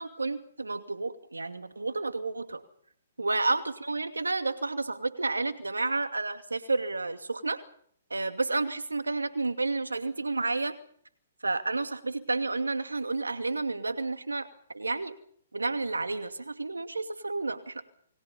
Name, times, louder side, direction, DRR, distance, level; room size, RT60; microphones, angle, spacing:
voice 1, 0.0-2.6 3.2-7.6 8.1-10.7 11.4-14.5 14.7-15.1 15.5-17.8, right 3 dB, 85° right, 8 dB, 2.5 m, -31 dB
29.5 x 22.5 x 5.6 m, 0.63 s
figure-of-eight pair, 125°, 0 cm